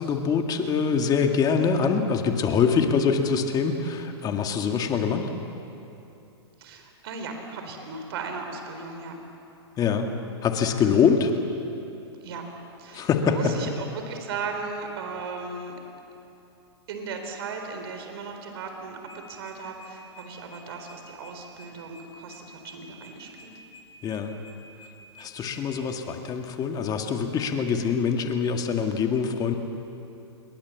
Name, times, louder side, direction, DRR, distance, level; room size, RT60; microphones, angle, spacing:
voice 1, 0.0-5.3 9.8-10.1 10.4-11.3 12.9-13.5 24.0-24.3 25.2-29.6, left 6 dB, 25° left, 4 dB, 2.1 m, -24 dB
voice 2, 6.6-9.1 12.2-12.4 12.8-15.8 16.9-23.5, right 4 dB, 60° right, 4 dB, 4.0 m, -37 dB
sound 1, 19.0-25.6, left 1 dB, 80° left, 7.1 m, -50 dB
27.5 x 22.0 x 7.3 m, 2.8 s
hypercardioid pair, 115°, 15 cm